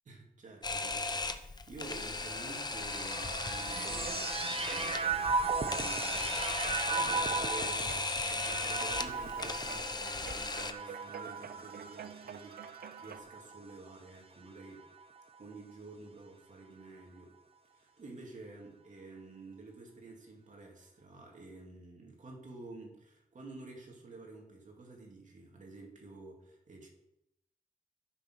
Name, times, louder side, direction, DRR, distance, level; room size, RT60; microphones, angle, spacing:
voice 1, 0.0-8.0 8.3-14.8 15.4-17.3 17.7-26.9, right 3 dB, 55° right, 0 dB, 2.6 m, -50 dB
Camera, 0.6-10.7, left 3 dB, 30° left, 0.7 m, -36 dB
sound 1, 2.4-13.9 14.6-15.4, right 4 dB, 40° right, 1.0 m, -37 dB
sound 2, 3.4-13.2, right 7 dB, 85° right, 0.6 m, -47 dB
10.5 x 7.0 x 6.3 m, 0.82 s
wide cardioid pair, 130°, 15 cm